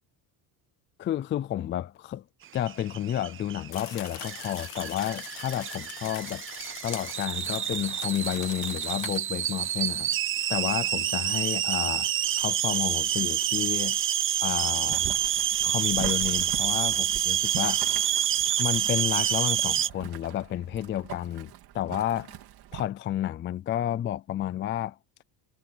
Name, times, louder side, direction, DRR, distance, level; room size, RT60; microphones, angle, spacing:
voice 1, 1.0-2.2 2.5-6.4 6.8-10.1 10.5-12.1 12.4-14.0 14.4-15.2 15.6-17.9 18.6-22.4 22.7-25.0, left 11 dB, 25° left, 0.4 m, -31 dB
sound 1, 2.6-19.9, right 11 dB, 30° right, 0.5 m, -28 dB
sound 2, 3.7-9.2, left 17 dB, 65° left, 1.3 m, -42 dB
Boiling, 14.9-22.8, right 13 dB, 50° right, 2.8 m, -42 dB
cardioid pair, 165°, 47 cm